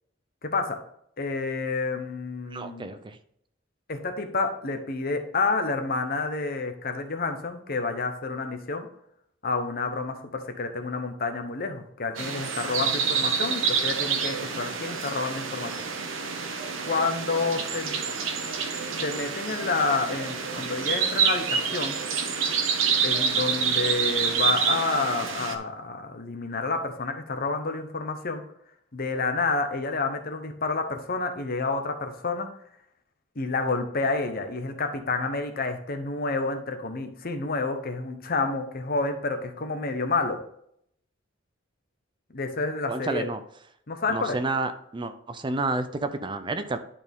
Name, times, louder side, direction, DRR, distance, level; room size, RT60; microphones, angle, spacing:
voice 1, 0.4-0.8 1.2-2.9 3.9-8.9 9.4-15.7 16.9-17.9 19.0-22.0 23.0-28.4 28.9-32.5 33.4-40.4 42.3-43.3 43.9-44.4, left 3 dB, 50° left, 7 dB, 1.0 m, -29 dB
voice 2, 2.5-3.2 42.9-43.4 44.1-46.8, right 3 dB, 25° right, 9 dB, 0.5 m, -30 dB
sound 1, 12.2-25.6, right 6 dB, 90° right, 0.9 m, -27 dB
10.5 x 4.3 x 3.6 m, 0.70 s
head